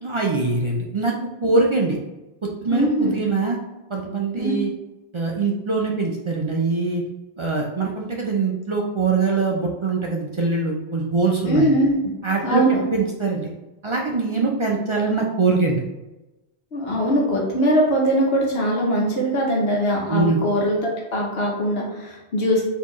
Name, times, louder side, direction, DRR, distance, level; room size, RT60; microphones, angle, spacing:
voice 1, 0.0-1.1 1.4-2.0 2.6-3.6 3.9-4.7 5.1-7.0 7.4-11.7 12.2-12.6 12.9-13.5 13.8-15.8 20.1-20.4, right 3 dB, 50° right, -1 dB, 0.3 m, -23 dB
voice 2, 2.7-3.2 4.4-4.6 11.5-12.0 12.4-12.8 16.7-22.6, equal, 65° left, -2 dB, 1.1 m, -21 dB
4.4 x 2.9 x 3.0 m, 1.0 s
omnidirectional pair, 1.1 m